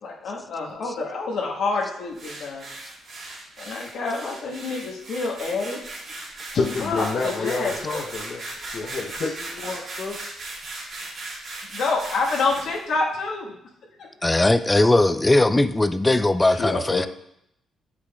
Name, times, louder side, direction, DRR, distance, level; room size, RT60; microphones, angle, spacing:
voice 1, 0.0-2.7 3.6-5.8 6.8-8.1 11.7-13.6, left 3 dB, 75° left, -3 dB, 1.3 m, -27 dB
sound 1, 2.2-12.8, right 2 dB, 55° right, 2.1 m, -37 dB
voice 2, 6.5-10.2 16.4-17.1, left 4 dB, 55° left, -3 dB, 0.8 m, -28 dB
voice 3, 14.2-17.1, left 2 dB, 15° left, 11 dB, 0.3 m, -19 dB
8.0 x 5.8 x 2.3 m, 0.77 s
cardioid pair, 90°, 0 cm